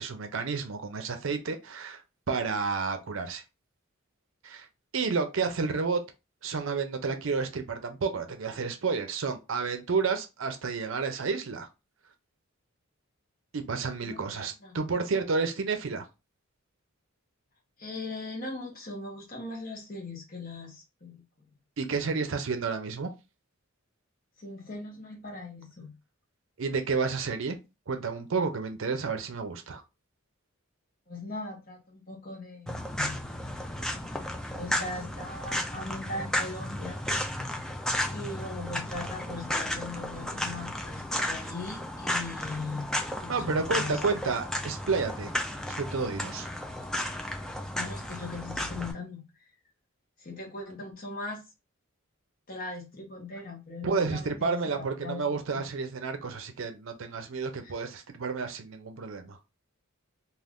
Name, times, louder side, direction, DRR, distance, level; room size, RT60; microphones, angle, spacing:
voice 1, 0.0-2.0 2.3-3.4 4.4-4.7 4.9-6.0 6.4-11.7 13.5-16.0 21.8-23.1 26.6-27.6 27.9-29.8 43.3-45.3 45.7-46.5 53.8-59.4, right 4 dB, 65° right, 0.5 m, -30 dB
voice 2, 17.8-21.2 24.4-25.9 31.1-33.2 34.5-37.0 38.1-44.0 47.7-49.2 50.2-51.4 52.5-55.6 57.6-57.9, left 2 dB, 40° left, 1.0 m, -39 dB
sound 1, 32.7-48.9, left 1 dB, 5° left, 0.3 m, -34 dB
2.5 x 2.4 x 3.4 m
head